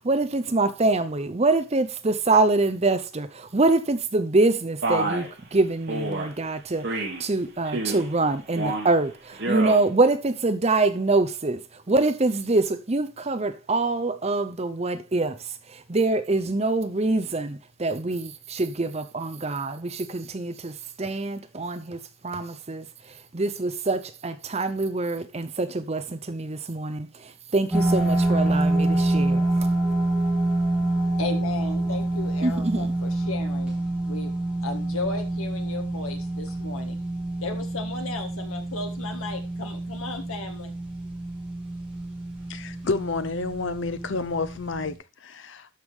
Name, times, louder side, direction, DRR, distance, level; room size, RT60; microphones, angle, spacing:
voice 1, 0.0-6.9 7.2-11.6 11.9-15.4 15.7-22.9 23.3-29.7 32.4-32.9, right 2 dB, 30° right, 0.6 m, -25 dB
Male speech man speaking, 4.8-5.3 5.9-6.3 6.8-7.2 7.6-8.1 8.5-8.9 9.3-9.8, right 2 dB, 55° right, 2.5 m, -28 dB
sound 1, 27.7-44.9, right 2 dB, 5° right, 2.5 m, -27 dB
voice 2, 31.2-33.8 34.1-34.3 34.6-37.0 37.4-40.7, left 3 dB, 75° left, 1.8 m, -35 dB
voice 3, 42.5-45.7, left 3 dB, 55° left, 0.7 m, -30 dB
12.5 x 5.0 x 3.6 m
head